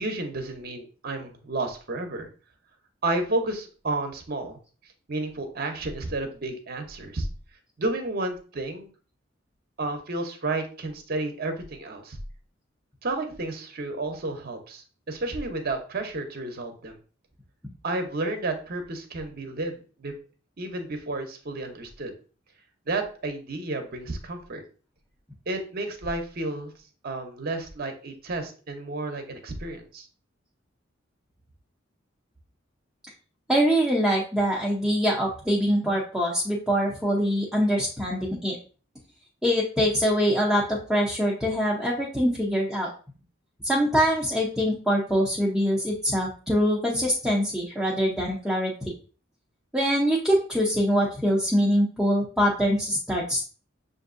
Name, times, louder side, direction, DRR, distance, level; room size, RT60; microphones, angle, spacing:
voice 1, 0.0-2.3 3.0-4.6 5.1-7.3 7.8-8.9 9.8-12.2 13.0-17.0 17.8-20.1 20.6-22.1 22.9-24.6 25.5-26.7 27.0-30.1, right 2 dB, 50° right, 5 dB, 0.8 m, -31 dB
voice 2, 33.5-38.6 39.4-42.9 43.6-48.9 49.7-53.5, equal, ahead, -5 dB, 0.6 m, -24 dB
6.3 x 2.6 x 2.5 m, 0.38 s
head